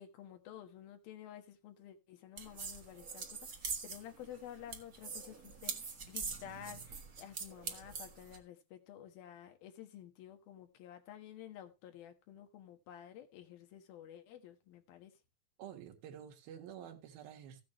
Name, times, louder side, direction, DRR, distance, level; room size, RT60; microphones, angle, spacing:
voice 1, 0.0-15.1, left 10 dB, 85° left, 3.3 m, -52 dB
sound 1, 2.4-8.4, right 5 dB, 70° right, 0.8 m, -44 dB
voice 2, 15.6-17.6, right 9 dB, 85° right, 3.4 m, -49 dB
15.0 x 8.6 x 3.1 m
omnidirectional pair, 4.1 m